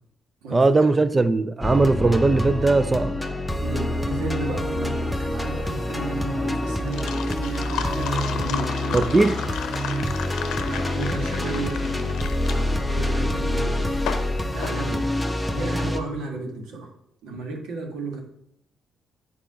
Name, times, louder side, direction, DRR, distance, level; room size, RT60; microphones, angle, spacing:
voice 1, 0.5-3.2 8.9-9.4, right 3 dB, 25° right, 0.4 m, -19 dB
sound 1, 1.6-16.0, left 1 dB, 5° left, 0.9 m, -26 dB
voice 2, 3.6-9.1 10.6-14.0 14.5-15.0 15.5-16.9 17.2-18.2, right 3 dB, 90° right, 1.7 m, -33 dB
sound 2, 5.7-15.5, left 8 dB, 80° left, 0.7 m, -34 dB
7.9 x 4.8 x 5.0 m
cardioid pair, 90°, 0 cm